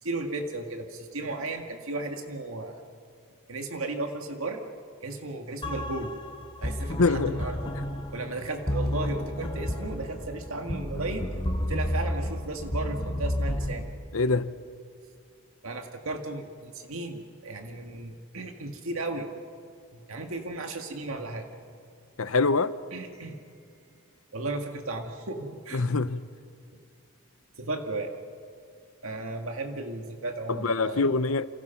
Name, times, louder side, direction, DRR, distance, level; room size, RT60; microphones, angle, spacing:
voice 1, 0.0-2.8 3.5-4.6 5.0-6.1 6.6-7.7 8.1-11.2 11.6-13.9 15.6-19.3 19.9-21.5 22.9-24.0 24.3-25.9 26.7-26.8 27.6-28.1 29.0-31.0, right 2 dB, 70° right, 2.0 m, -35 dB
sound 1, 5.6-13.7, left 1 dB, 25° left, 2.9 m, -31 dB
voice 2, 7.0-7.4 14.1-14.5 22.2-22.7 25.7-26.3 30.6-31.5, left 3 dB, 70° left, 0.9 m, -24 dB
29.0 x 27.0 x 5.9 m
head